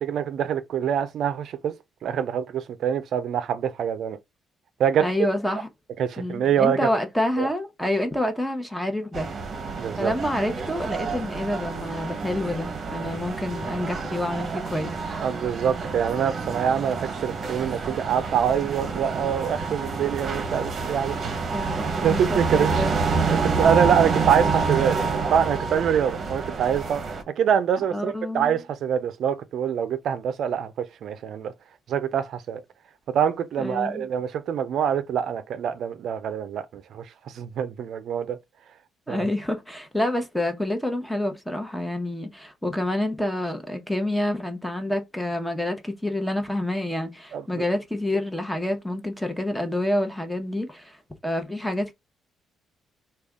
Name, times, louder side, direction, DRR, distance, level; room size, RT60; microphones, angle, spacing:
voice 1, 0.0-1.7 2.0-4.2 4.8-5.1 6.0-6.8 7.4-7.5 9.8-10.1 15.2-21.3 22.0-22.8 23.3-31.5 31.9-32.6 33.1-37.1 37.3-38.4 39.1-39.2 47.3-47.4, right 8 dB, 70° right, 0.4 m, -25 dB
voice 2, 5.0-5.7 6.2-9.3 10.0-15.0 21.5-23.0 27.9-28.6 33.6-34.1 39.1-51.0 51.2-51.9, left 1 dB, 5° left, 0.9 m, -28 dB
sound 1, 9.1-27.2, right 4 dB, 45° right, 0.9 m, -28 dB
3.3 x 2.3 x 3.5 m
cardioid pair, 90°, 0 cm